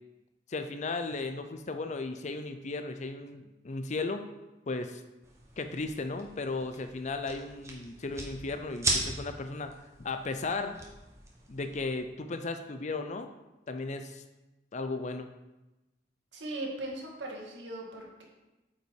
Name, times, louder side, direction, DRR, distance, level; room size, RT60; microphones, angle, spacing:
voice 1, 0.5-4.2 4.7-5.0 5.6-9.7 10.0-10.8 11.5-13.3 13.7-14.2 14.7-15.3, left 3 dB, 40° left, 8 dB, 0.5 m, -35 dB
sound 1, 5.2-11.9, right 2 dB, 15° right, 1.3 m, -38 dB
voice 2, 16.3-18.2, right 1 dB, 80° right, -2 dB, 2.0 m, -39 dB
8.7 x 5.6 x 4.7 m, 1.0 s
head